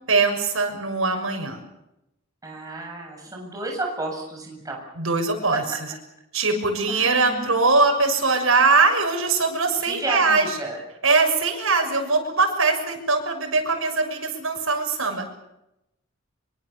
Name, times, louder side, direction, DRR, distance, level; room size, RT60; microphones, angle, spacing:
voice 1, 0.1-1.6 5.0-5.6 6.3-10.4 11.0-15.2, right 3 dB, 75° right, 4 dB, 6.5 m, -21 dB
voice 2, 2.4-4.8 5.5-5.6 6.9-7.5 9.8-10.8, right 2 dB, 15° right, 0 dB, 7.5 m, -32 dB
25.5 x 24.0 x 7.2 m, 0.88 s
head